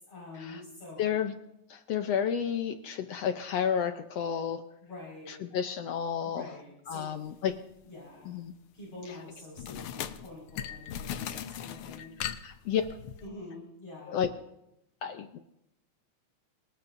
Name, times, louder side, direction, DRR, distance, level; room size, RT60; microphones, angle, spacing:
voice 1, 0.1-1.2 4.8-5.4 6.2-7.1 7.8-8.3 8.7-12.1 13.2-14.2, left 2 dB, 55° left, -4 dB, 6.3 m, -46 dB
voice 2, 1.0-1.3 1.7-4.6 5.3-6.5 6.9-7.6 8.3-8.5 12.4-12.8 14.1-14.3 15.0-15.4, left 8 dB, 70° left, 7 dB, 1.7 m, -31 dB
sound 1, 7.5-7.7 9.6-13.3, left 9 dB, 90° left, 1.2 m, -39 dB
26.5 x 19.0 x 2.7 m, 0.84 s
omnidirectional pair, 3.4 m